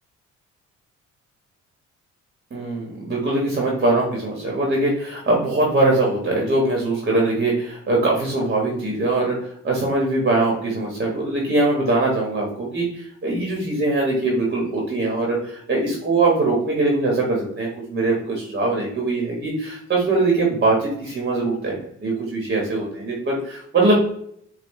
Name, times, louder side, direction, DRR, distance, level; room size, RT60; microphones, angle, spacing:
voice 1, 2.5-21.7 22.0-24.0, right 2 dB, 35° right, -2 dB, 1.3 m, -22 dB
5.4 x 2.4 x 3.1 m, 0.68 s
cardioid pair, 90°, 30 cm